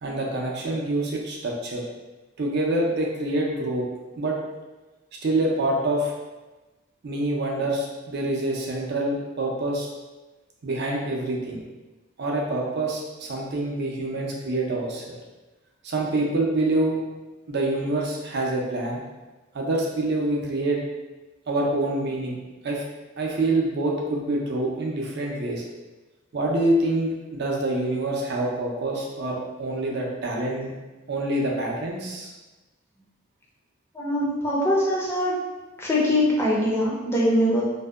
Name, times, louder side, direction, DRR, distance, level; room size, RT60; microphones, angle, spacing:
voice 1, 0.0-1.8 2.4-3.8 4.2-4.4 5.2-6.1 7.0-9.9 10.6-11.6 12.2-15.1 15.8-17.0 17.5-19.0 19.5-20.8 21.5-22.3 22.6-22.8 23.2-25.6 26.3-30.7 31.1-32.3, right 2 dB, 50° right, -2 dB, 0.4 m, -26 dB
voice 2, 33.9-35.3 35.8-37.6, left 1 dB, 10° left, -5 dB, 0.4 m, -22 dB
2.6 x 2.1 x 2.3 m, 1.2 s
head